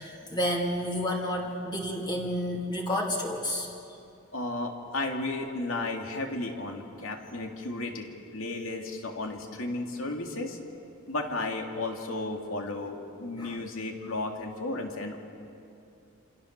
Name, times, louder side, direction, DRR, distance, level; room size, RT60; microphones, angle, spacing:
voice 1, 0.0-3.7 13.4-13.6, equal, 20° left, -1 dB, 2.8 m, -30 dB
voice 2, 4.3-10.6 11.1-15.2, left 2 dB, 70° left, 2 dB, 3.0 m, -34 dB
28.0 x 27.5 x 6.9 m, 2.6 s
head